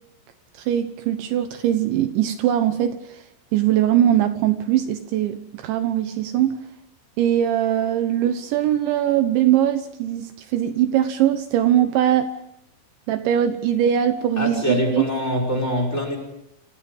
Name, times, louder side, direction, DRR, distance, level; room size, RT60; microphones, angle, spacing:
voice 1, 0.6-3.2 3.5-6.6 7.2-12.3 13.1-15.1, right 11 dB, 75° right, 9 dB, 3.2 m, -21 dB
voice 2, 14.4-16.2, equal, 15° left, 5 dB, 5.6 m, -23 dB
29.5 x 27.5 x 5.4 m, 0.81 s
omnidirectional pair, 5.7 m